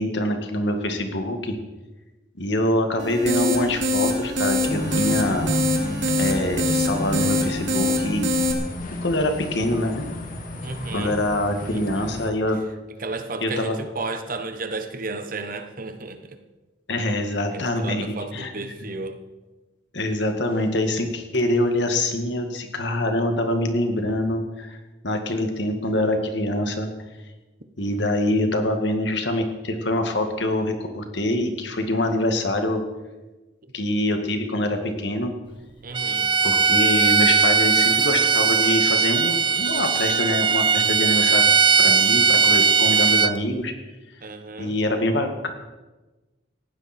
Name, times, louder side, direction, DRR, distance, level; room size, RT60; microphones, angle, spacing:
voice 1, 0.0-1.5 2.4-5.5 6.2-8.3 9.0-10.1 10.9-12.6 13.4-13.8 16.9-18.5 19.9-24.8 25.0-26.9 27.8-32.8 33.7-35.3 36.4-41.4 41.8-43.7 44.6-45.5, left 1 dB, 60° left, 5 dB, 2.2 m, -25 dB
sound 1, 3.0-8.5, left 1 dB, 70° right, 2.5 m, -24 dB
sound 2, 4.7-12.3, equal, 45° left, 2.1 m, -31 dB
voice 2, 10.6-11.2 11.7-12.1 13.0-16.4 17.5-19.2 35.8-36.3 44.2-44.8, right 3 dB, 45° right, 8 dB, 1.3 m, -33 dB
Bowed string instrument, 35.9-43.3, right 5 dB, 25° right, 0.4 m, -19 dB
19.0 x 15.5 x 4.5 m, 1.2 s
head